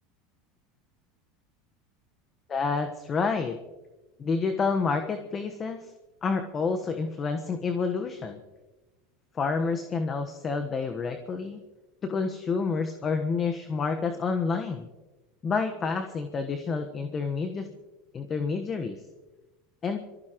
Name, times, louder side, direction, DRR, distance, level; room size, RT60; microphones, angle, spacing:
voice 1, 2.5-3.6 4.2-5.9 6.2-8.4 9.3-11.6 12.0-14.9 15.4-17.7 18.1-19.0 19.8-20.0, left 4 dB, 30° left, 6 dB, 1.2 m, -29 dB
25.0 x 15.0 x 3.1 m, 1.1 s
supercardioid pair, 110°, 0 cm